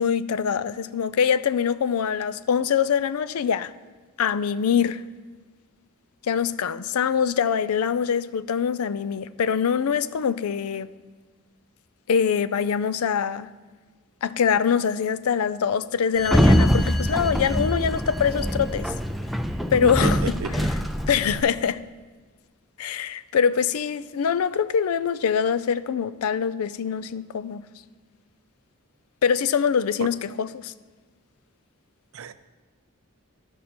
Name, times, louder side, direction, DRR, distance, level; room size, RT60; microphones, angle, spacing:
voice 1, 0.0-3.7 4.2-5.0 6.3-10.9 12.1-13.5 14.2-18.9 19.7-20.2 21.1-21.8 22.8-27.6 29.2-30.7, left 7 dB, 85° left, 0.4 m, -24 dB
Sliding door, 16.2-21.4, equal, ahead, 0.3 m, -23 dB
voice 2, 19.8-20.7 30.0-30.1 32.1-32.3, right 4 dB, 70° right, 0.5 m, -30 dB
14.0 x 5.4 x 4.3 m
head